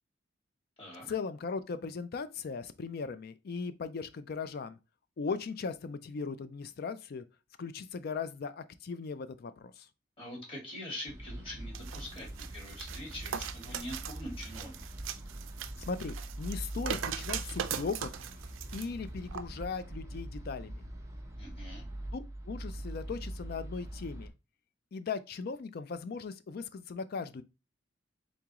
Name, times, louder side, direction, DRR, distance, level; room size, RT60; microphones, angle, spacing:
voice 1, 1.1-4.8 5.2-7.2 7.6-9.9 15.9-18.1 18.7-20.9 22.1-24.3 24.9-27.4, left 5 dB, 50° left, 0.4 m, -38 dB
voice 2, 10.2-14.8 21.4-21.8, left 1 dB, 30° left, 1.9 m, -44 dB
sound 1, 11.1-24.3, right 1 dB, 15° right, 0.7 m, -43 dB
sound 2, 11.7-18.9 19.3-19.4, right 8 dB, 80° right, 0.4 m, -40 dB
3.9 x 3.6 x 2.9 m
head